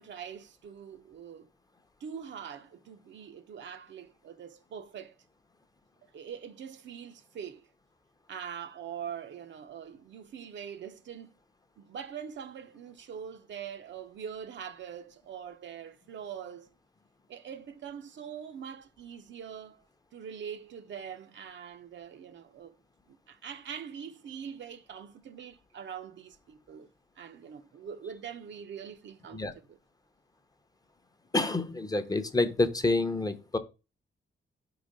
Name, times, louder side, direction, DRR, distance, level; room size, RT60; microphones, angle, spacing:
voice 1, 0.0-1.5 2.0-5.1 6.1-7.6 8.3-11.3 11.8-16.7 17.3-19.8 20.1-22.8 23.1-26.9 27.2-29.8, right 8 dB, 65° right, 0.6 m, -43 dB
voice 2, 31.3-33.6, left 2 dB, 20° left, 0.6 m, -28 dB
5.1 x 3.8 x 5.1 m
cardioid pair, 115°, 20 cm